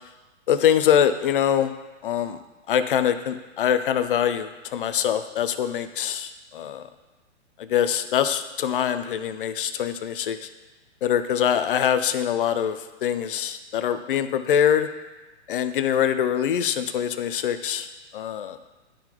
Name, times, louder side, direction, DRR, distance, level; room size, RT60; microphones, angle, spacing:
voice 1, 0.5-1.7 2.0-2.4 2.7-6.9 7.6-10.5 11.0-14.9 15.5-18.6, left 9 dB, 50° left, 11 dB, 0.5 m, -24 dB
11.5 x 3.9 x 2.9 m, 1.1 s
hypercardioid pair, 155°, 35 cm